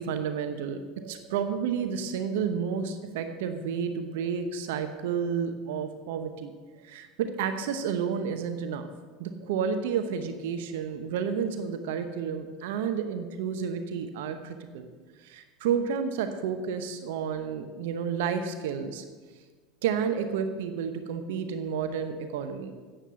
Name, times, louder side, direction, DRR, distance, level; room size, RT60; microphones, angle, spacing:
voice 1, 0.0-8.9 9.2-14.9 15.2-19.0 19.8-22.7, right 7 dB, 80° right, 8 dB, 0.9 m, -31 dB
9.0 x 7.4 x 6.9 m, 1.4 s
supercardioid pair, 100°, 0 cm